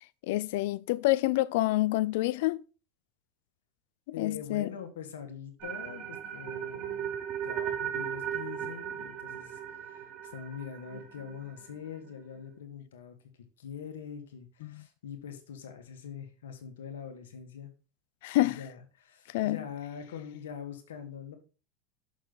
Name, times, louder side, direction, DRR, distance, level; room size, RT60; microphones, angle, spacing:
voice 1, 0.3-2.6 4.2-4.7 14.6-14.8 18.2-18.6 19.3-19.6, left 17 dB, 70° left, 0.4 m, -27 dB
voice 2, 4.1-7.2 7.4-13.2 13.6-17.7 18.4-21.4, left 7 dB, 85° left, 1.9 m, -43 dB
sound 1, 5.6-11.7, right 9 dB, 50° right, 1.9 m, -37 dB
6.6 x 6.1 x 4.0 m
hypercardioid pair, 100°, 0 cm